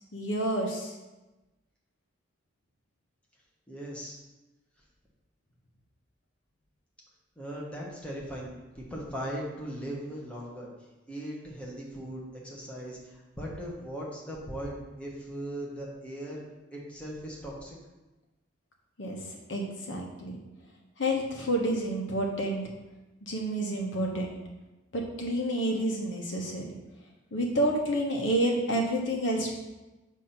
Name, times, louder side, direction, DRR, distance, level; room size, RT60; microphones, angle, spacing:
voice 1, 0.1-0.9 19.0-20.4 21.0-22.6 23.2-24.4 24.9-26.6 27.3-29.5, right 1 dB, 65° left, 0 dB, 1.0 m, -29 dB
voice 2, 3.7-4.2 7.4-10.7 11.1-16.4 16.7-17.7, equal, 5° left, -4 dB, 1.1 m, -39 dB
7.1 x 2.8 x 5.7 m, 1.1 s
head